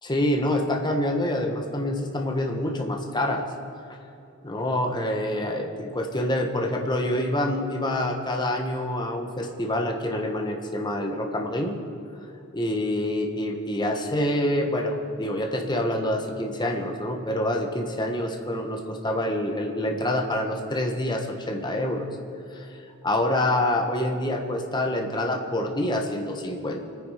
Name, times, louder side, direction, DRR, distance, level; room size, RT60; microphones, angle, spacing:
voice 1, 0.0-3.5 4.4-11.8 12.5-22.1 22.5-22.7 23.0-26.8, left 1 dB, 20° left, 3 dB, 1.3 m, -26 dB
24.0 x 9.7 x 5.1 m, 2.7 s
head